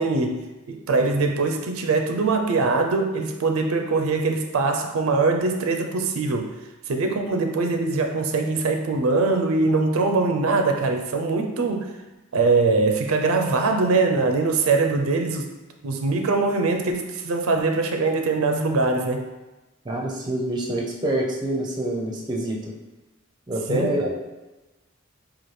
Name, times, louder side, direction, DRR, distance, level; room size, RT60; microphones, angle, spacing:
voice 1, 0.0-6.5 6.9-11.9 12.3-15.5 15.8-19.3 23.7-24.1, right 3 dB, 80° right, 4 dB, 0.4 m, -22 dB
voice 2, 19.8-22.7 23.5-24.1, right 1 dB, 20° right, -1 dB, 0.5 m, -26 dB
4.1 x 2.4 x 3.2 m, 1.1 s
head